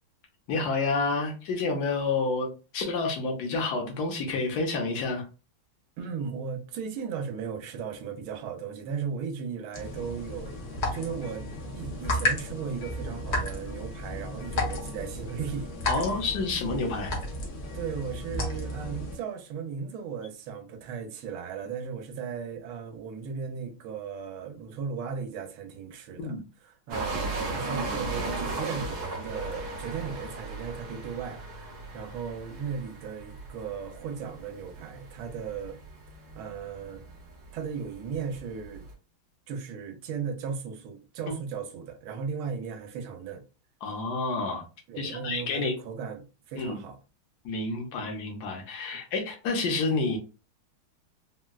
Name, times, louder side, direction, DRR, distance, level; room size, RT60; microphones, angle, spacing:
voice 1, 0.5-5.2 15.9-17.1 26.2-26.4 43.8-44.6 45.0-45.7 46.6-46.8 47.4-50.2, left 3 dB, 60° left, 1.1 m, -29 dB
voice 2, 6.0-10.6 10.9-11.5 11.7-15.7 17.7-26.3 26.6-35.8 36.3-37.0 37.5-38.9 39.5-43.4 44.9-47.0 48.9-49.0, right 6 dB, 90° right, 1.4 m, -36 dB
sound 1, 9.7-19.2, left 1 dB, 80° left, 0.6 m, -33 dB
sound 2, 26.9-38.9, right 3 dB, 60° right, 1.2 m, -37 dB
3.7 x 2.2 x 2.2 m
omnidirectional pair, 2.2 m